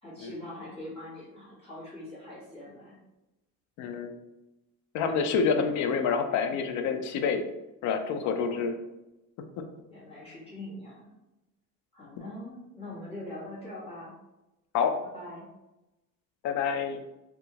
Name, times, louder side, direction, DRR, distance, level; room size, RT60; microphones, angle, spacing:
voice 1, 0.0-3.0 8.2-8.6 9.9-11.1 11.9-14.1 15.1-15.5, left 1 dB, 20° left, -10 dB, 1.1 m, -43 dB
voice 2, 3.8-4.1 4.9-7.4 7.8-8.7 14.7-14.9 16.4-17.0, left 6 dB, 60° left, 6 dB, 0.4 m, -27 dB
2.9 x 2.4 x 2.7 m, 0.96 s
cardioid pair, 165°, 32 cm